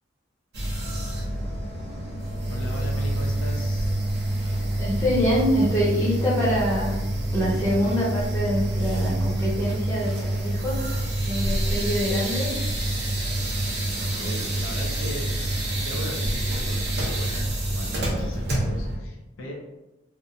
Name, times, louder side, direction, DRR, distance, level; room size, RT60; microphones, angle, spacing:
sound 1, 0.5-19.0, right 1 dB, 55° right, 0.6 m, -27 dB
voice 1, 2.5-4.0 14.1-15.3 15.8-19.5, equal, 85° left, -1 dB, 0.5 m, -38 dB
voice 2, 4.8-7.0 7.3-10.8 11.2-12.5 14.0-14.4, equal, 15° left, -6 dB, 0.8 m, -25 dB
2.7 x 2.1 x 2.5 m, 0.99 s
head